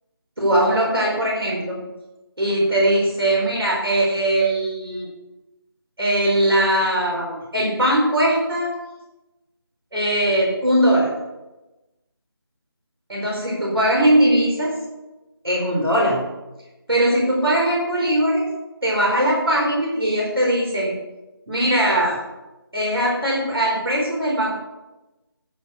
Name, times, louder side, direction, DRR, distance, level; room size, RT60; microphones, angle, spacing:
voice 1, 0.4-1.8 2.4-5.1 6.0-8.7 9.9-11.1 13.1-14.7 15.4-16.2 16.9-18.4 18.8-20.9 21.5-22.2 22.7-24.5, right 1 dB, 75° right, -3 dB, 4.4 m, -20 dB
9.0 x 8.0 x 6.9 m, 1.0 s
figure-of-eight pair, 165°, 13 cm